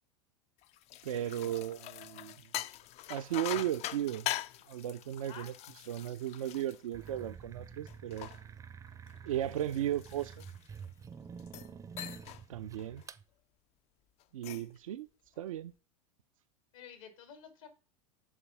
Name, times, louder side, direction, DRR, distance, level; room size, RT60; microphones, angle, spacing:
sound 1, 0.6-7.4 7.9-10.9 11.4-11.7 12.0-12.4 12.8-13.1 14.2-14.8, left 14 dB, 40° left, 0.4 m, -43 dB
voice 1, 1.0-2.3 3.1-4.3 4.7-5.5 5.9-8.3 9.2-10.4 12.5-13.0 14.3-15.1 15.4-15.7, right 12 dB, 85° right, 0.4 m, -35 dB
sound 2, 6.9-13.2, right 6 dB, 20° right, 0.5 m, -49 dB
voice 2, 14.3-14.7 16.7-17.7, left 7 dB, 75° left, 1.8 m, -51 dB
7.2 x 3.2 x 5.4 m
hypercardioid pair, 100°, 17 cm